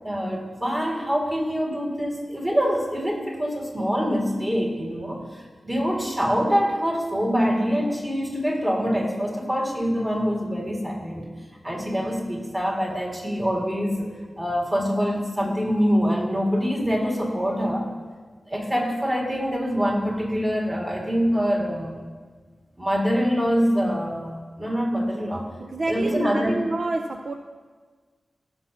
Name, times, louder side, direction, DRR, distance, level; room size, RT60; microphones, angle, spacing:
voice 1, 0.0-11.3 11.6-14.1 14.4-17.9 18.5-22.0 22.8-25.5 25.9-26.6, equal, 20° right, -2 dB, 2.1 m, -25 dB
voice 2, 25.6-27.3, right 2 dB, 55° right, 4 dB, 0.5 m, -28 dB
18.0 x 6.2 x 2.9 m, 1.5 s
wide cardioid pair, 75°, 0 cm